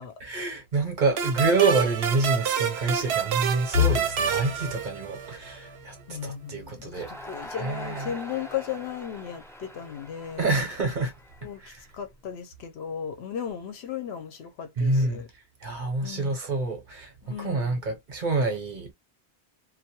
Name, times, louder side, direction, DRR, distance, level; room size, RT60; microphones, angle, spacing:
voice 1, 0.2-7.1 7.5-8.1 10.4-11.1 11.6-11.8 14.8-15.2 15.6-17.1 17.4-18.9, right 3 dB, 50° right, 0.9 m, -27 dB
sound 1, 1.2-5.5, right 8 dB, 75° right, 0.8 m, -28 dB
sound 2, 3.7-15.6 16.0-16.3 16.6-16.8 17.7-18.1, left 11 dB, 55° left, 0.9 m, -36 dB
voice 2, 6.1-10.5 11.4-15.3 16.0-16.4 17.2-17.9, left 9 dB, 75° left, 0.8 m, -36 dB
Crowd, 6.9-12.1, equal, 5° left, 0.5 m, -43 dB
2.2 x 2.2 x 2.8 m
omnidirectional pair, 1.1 m